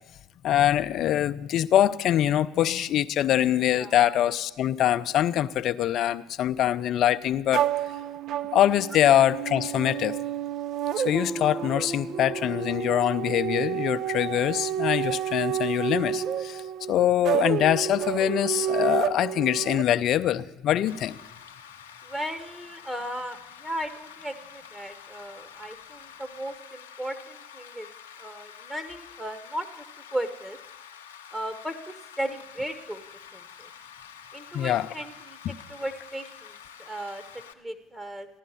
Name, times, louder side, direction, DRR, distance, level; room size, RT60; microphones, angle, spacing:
voice 1, 0.4-7.6 8.5-10.1 11.0-21.2 34.5-34.9 35.4-35.5, left 11 dB, 55° left, 13 dB, 0.5 m, -24 dB
sound 1, 7.5-19.8, right 10 dB, 55° right, 0.5 m, -30 dB
Rain, 20.9-37.5, left 8 dB, 85° left, 0.9 m, -47 dB
voice 2, 22.0-27.9 28.2-29.8 30.1-30.6 31.3-33.0 33.3-33.7 34.3-35.4 35.7-36.5 36.8-38.3, right 1 dB, 15° right, 8 dB, 1.1 m, -36 dB
15.5 x 11.5 x 5.6 m, 1.0 s
hypercardioid pair, 65°, 0 cm